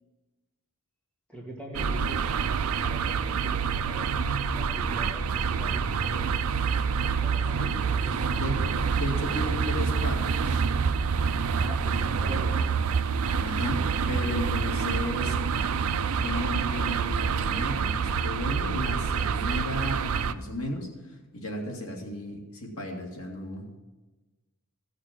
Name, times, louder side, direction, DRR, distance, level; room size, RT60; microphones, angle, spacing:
voice 1, 1.3-4.1 4.5-6.4 7.2-8.5 11.6-12.6, equal, 5° left, -2 dB, 2.1 m, -43 dB
sound 1, 1.7-20.3, right 6 dB, 90° right, 0.5 m, -27 dB
voice 2, 9.0-10.6 13.4-15.4 16.2-20.9 21.3-23.6, left 1 dB, 85° left, 0 dB, 2.3 m, -34 dB
15.5 x 6.7 x 5.9 m, 1.2 s
head